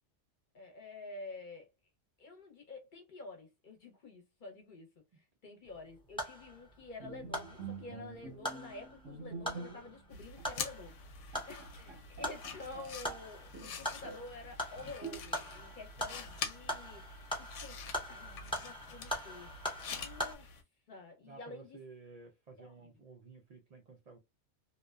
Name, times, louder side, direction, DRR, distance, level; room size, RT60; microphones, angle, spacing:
voice 1, 0.5-1.7 2.2-4.9 5.2-17.8 18.1-20.5 20.9-21.8 22.6-22.9, left 3 dB, 50° left, 0.8 m, -49 dB
sound 1, 5.6-20.3, equal, 5° left, 0.4 m, -43 dB
Bowed string instrument, 7.0-10.0 10.4-10.6 11.0-11.1 11.3-13.2 13.5-14.4 15.0-15.6, right 4 dB, 90° right, 1.1 m, -47 dB
sound 2, 10.1-20.6, left 5 dB, 85° left, 0.9 m, -46 dB
voice 2, 21.2-24.2, right 4 dB, 65° right, 0.3 m, -54 dB
2.6 x 2.1 x 2.2 m
omnidirectional pair, 1.3 m